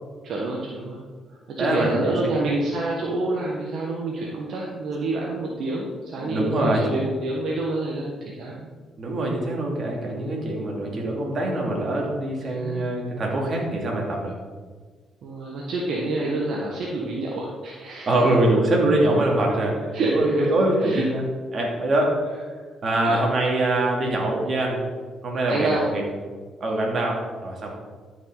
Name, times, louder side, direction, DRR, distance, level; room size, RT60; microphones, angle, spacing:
voice 1, 0.2-1.0 1.3-8.7 12.4-12.9 15.2-18.3 19.9-20.5 20.8-21.1 22.5-22.6 23.0-23.2 25.5-25.9, right 2 dB, 65° right, -3 dB, 1.3 m, -28 dB
voice 2, 1.6-2.5 6.2-7.0 9.0-14.4 18.1-21.2 21.5-22.2 22.8-24.8 25.2-26.0 26.6-27.7, right 1 dB, 50° right, -1 dB, 2.5 m, -23 dB
sound 1, 1.8-5.7 6.1-6.4, left 3 dB, 70° left, 1.2 m, -41 dB
12.5 x 5.8 x 4.0 m, 1.5 s
cardioid pair, 90°, 0 cm